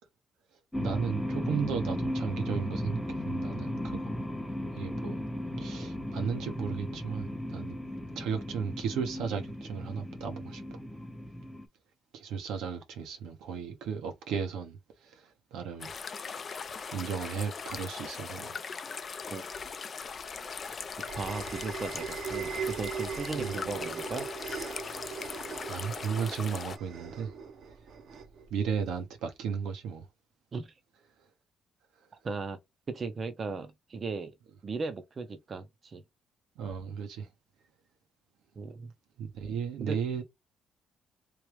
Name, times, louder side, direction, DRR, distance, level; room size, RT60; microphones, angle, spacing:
sound 1, 0.7-11.6, left 1 dB, 5° left, 0.7 m, -36 dB
voice 1, 0.8-4.2 4.7-5.2 5.6-7.8 8.1-10.8 12.1-15.9 16.9-18.6 23.3-23.7 25.7-27.3 28.5-30.1 36.6-37.3 39.2-40.2, right 6 dB, 90° right, 1.0 m, -35 dB
sound 2, 15.8-26.8, left 5 dB, 45° left, 0.5 m, -40 dB
sound 3, 20.1-29.0, right 6 dB, 70° right, 0.8 m, -40 dB
voice 2, 21.2-24.3 30.5-30.7 32.2-32.6 32.9-34.3 34.6-36.0 38.6-38.9 39.8-40.0, right 4 dB, 40° right, 0.6 m, -37 dB
3.2 x 2.4 x 3.0 m
cardioid pair, 90°, 0 cm